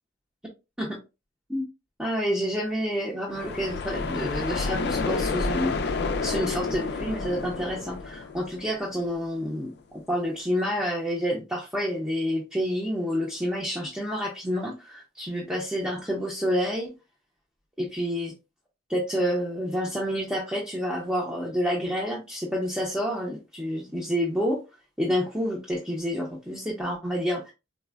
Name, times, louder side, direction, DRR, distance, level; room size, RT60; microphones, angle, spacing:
voice 1, 2.0-6.0 6.2-16.9 17.8-18.3 18.9-24.6 25.0-27.5, equal, 5° right, 0.6 m, -29 dB
sound 1, 3.3-9.1, left 4 dB, 60° left, 0.4 m, -30 dB
4.1 x 2.0 x 2.3 m
head